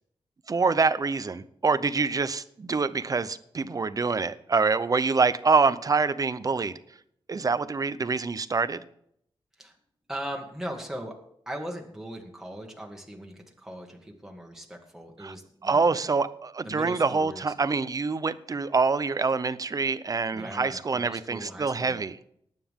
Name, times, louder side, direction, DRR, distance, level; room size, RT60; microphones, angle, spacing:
voice 1, 0.5-6.8 7.3-8.8 15.2-15.3 15.6-22.2, right 4 dB, 35° right, 15 dB, 0.7 m, -26 dB
voice 2, 10.1-11.2 11.5-15.9 16.6-17.4 20.3-22.0, equal, 5° right, 1 dB, 1.8 m, -39 dB
19.0 x 9.2 x 3.7 m, 0.69 s
wide cardioid pair, 135°, 10 cm